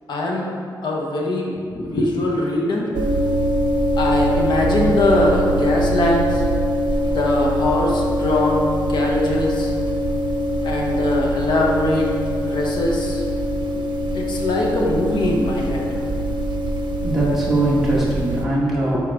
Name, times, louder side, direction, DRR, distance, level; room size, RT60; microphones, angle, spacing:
voice 1, 0.1-0.5 0.8-2.9 4.0-6.4 7.1-8.6 8.9-9.7 10.6-12.1 12.5-13.2 14.1-15.9, left 1 dB, 75° left, -1 dB, 1.1 m, -21 dB
sound 1, 2.9-18.4, equal, 85° right, 0.6 m, -23 dB
voice 2, 17.0-19.0, right 2 dB, 5° right, -8 dB, 1.7 m, -20 dB
8.8 x 5.0 x 3.5 m, 2.4 s
wide cardioid pair, 175°, 8 cm